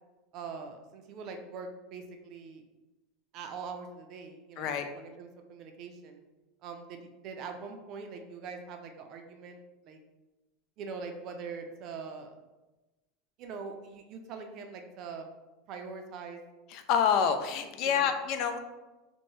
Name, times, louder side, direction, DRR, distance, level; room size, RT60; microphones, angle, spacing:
voice 1, 0.3-2.6 3.3-6.2 6.6-9.6 9.8-10.0 10.8-12.3 13.4-15.3 15.7-16.4 17.8-18.1, right 5 dB, 50° right, 5 dB, 0.4 m, -43 dB
voice 2, 16.7-18.6, left 7 dB, 55° left, 7 dB, 0.3 m, -27 dB
2.7 x 2.1 x 3.0 m, 1.1 s
supercardioid pair, 110°, 0 cm